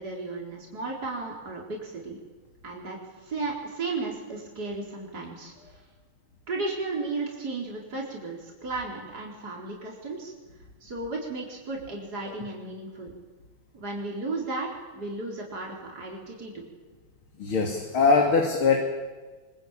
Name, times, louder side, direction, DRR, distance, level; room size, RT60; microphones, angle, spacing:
voice 1, 0.0-2.2 2.6-5.5 6.5-10.3 10.8-13.1 13.7-16.7, right 3 dB, 50° right, -1 dB, 4.7 m, -34 dB
voice 2, 17.4-18.8, left 4 dB, 85° left, 2 dB, 3.4 m, -22 dB
25.0 x 23.5 x 9.0 m, 1.3 s
omnidirectional pair, 2.2 m